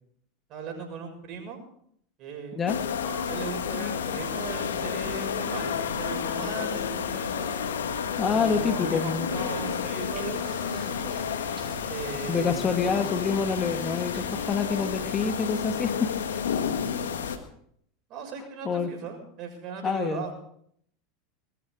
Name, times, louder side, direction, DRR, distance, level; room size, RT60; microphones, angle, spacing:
voice 1, 0.5-1.6 2.2-2.6 3.3-7.5 8.3-11.1 11.9-13.0 16.7-17.1 18.1-20.4, right 5 dB, 50° right, 3 dB, 6.3 m, -38 dB
sound 1, 2.7-17.4, left 7 dB, 85° left, 1.6 m, -31 dB
Piano, 3.0-9.2, left 2 dB, 60° left, 5.7 m, -49 dB
voice 2, 8.2-9.3 12.3-16.5 18.6-18.9 19.8-20.2, left 5 dB, 30° left, 8 dB, 1.5 m, -27 dB
sound 2, 10.1-16.0, right 4 dB, 30° right, 5.7 m, -47 dB
20.5 x 13.5 x 4.9 m, 0.67 s
hypercardioid pair, 95°, 0 cm